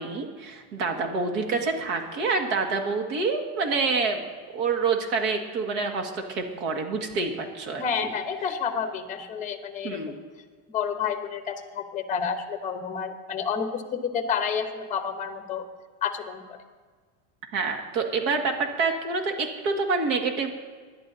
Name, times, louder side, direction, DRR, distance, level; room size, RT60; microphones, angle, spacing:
voice 1, 0.0-4.2 4.5-7.8 9.8-10.1 17.5-20.5, right 4 dB, 60° right, 3 dB, 2.1 m, -27 dB
voice 2, 7.8-10.0 10.7-15.6 16.0-16.6, left 6 dB, 15° left, 7 dB, 1.0 m, -30 dB
25.5 x 11.5 x 2.8 m, 1.5 s
supercardioid pair, 170°, 44 cm